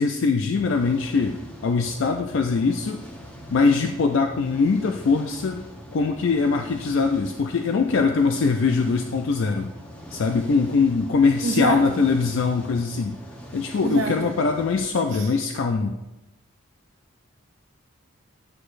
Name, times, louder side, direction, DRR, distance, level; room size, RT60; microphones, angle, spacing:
voice 1, 0.0-3.0 3.5-5.6 5.9-9.7 10.1-13.2 13.5-16.0, left 4 dB, 60° left, 5 dB, 0.4 m, -22 dB
sound 1, 0.5-14.9, equal, 5° left, 0.9 m, -42 dB
voice 2, 11.4-12.0 13.8-14.3 15.1-15.3, right 3 dB, 60° right, 1 dB, 0.6 m, -27 dB
9.7 x 6.4 x 2.5 m, 1.0 s
head